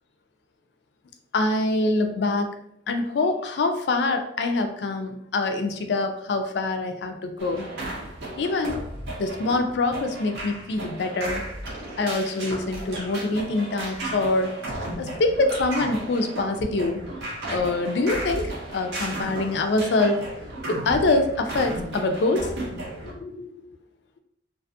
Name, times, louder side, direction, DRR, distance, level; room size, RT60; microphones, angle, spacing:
voice 1, 1.3-2.6 2.9-7.7 8.4-8.8 9.2-11.4 12.0-14.5 15.0-17.1 17.5-20.3 20.7-22.6 23.0-23.6, left 2 dB, 65° left, 6 dB, 0.3 m, -25 dB
sound 1, 7.4-23.1, right 1 dB, 70° right, 0.7 m, -34 dB
2.4 x 2.3 x 2.6 m, 0.74 s
head